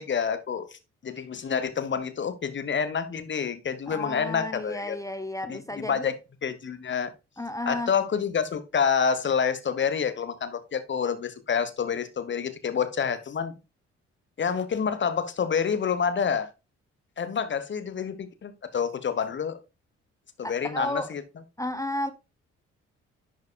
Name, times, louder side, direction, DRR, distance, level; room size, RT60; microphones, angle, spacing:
voice 1, 0.0-5.0 5.5-7.1 7.7-13.6 14.4-16.5 17.2-19.6 20.4-21.2, left 6 dB, 30° left, 1.1 m, -28 dB
voice 2, 3.9-6.1 7.4-7.9 20.4-21.1 21.6-22.1, left 1 dB, 10° left, 0.7 m, -32 dB
10.5 x 4.7 x 2.3 m
figure-of-eight pair, 40°, 36 cm